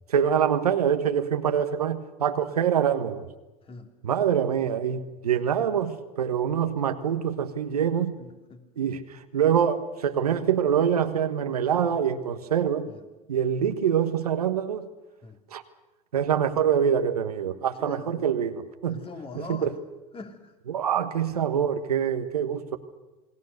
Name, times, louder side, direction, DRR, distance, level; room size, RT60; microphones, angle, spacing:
voice 1, 0.1-3.3 4.0-8.1 8.8-9.1 9.3-12.9 13.3-14.8 15.5-15.6 16.1-19.0 19.3-19.7 20.7-22.8, right 8 dB, 85° right, 8 dB, 1.4 m, -25 dB
voice 2, 8.2-8.6 12.9-13.0 15.2-15.4 17.8-18.3 18.8-19.7 20.1-20.5, left 3 dB, 30° left, 5 dB, 3.1 m, -42 dB
28.5 x 19.5 x 6.6 m, 1.1 s
hypercardioid pair, 80°, 19 cm